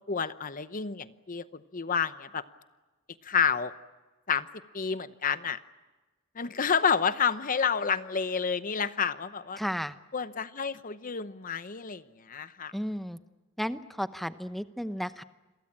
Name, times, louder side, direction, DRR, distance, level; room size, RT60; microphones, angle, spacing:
voice 1, 0.1-2.4 3.2-3.7 4.3-4.5 4.7-5.6 6.4-9.6 10.1-12.7, left 6 dB, 40° left, 13 dB, 0.8 m, -29 dB
voice 2, 9.6-10.0 12.7-13.2 13.6-15.2, equal, ahead, 11 dB, 0.8 m, -33 dB
28.5 x 23.0 x 8.6 m, 1.2 s
head